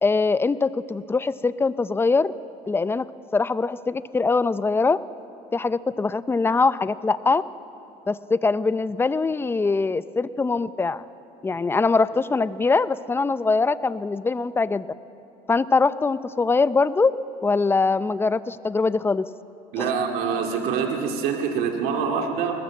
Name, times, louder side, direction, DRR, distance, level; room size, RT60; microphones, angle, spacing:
voice 1, 0.0-2.3 2.7-3.1 3.3-5.0 5.5-7.4 8.1-11.0 11.4-14.9 15.5-17.1 17.4-19.2 19.8-19.9, left 4 dB, 15° left, 15 dB, 0.5 m, -22 dB
voice 2, 19.7-22.5, right 6 dB, 70° right, 2 dB, 2.2 m, -25 dB
20.5 x 20.0 x 7.5 m, 2.9 s
cardioid pair, 110°, 16 cm